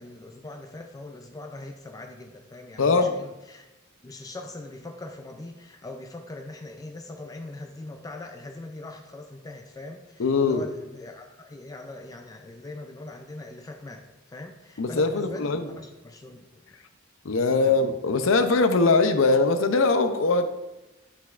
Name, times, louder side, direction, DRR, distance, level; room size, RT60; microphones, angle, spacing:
voice 1, 0.0-3.7 4.0-16.6 17.4-17.8, left 2 dB, 20° left, 4 dB, 0.4 m, -41 dB
voice 2, 2.8-3.2 10.2-10.6 14.8-15.7 17.2-20.5, left 3 dB, 75° left, 8 dB, 0.6 m, -21 dB
8.0 x 5.8 x 2.5 m, 1.0 s
head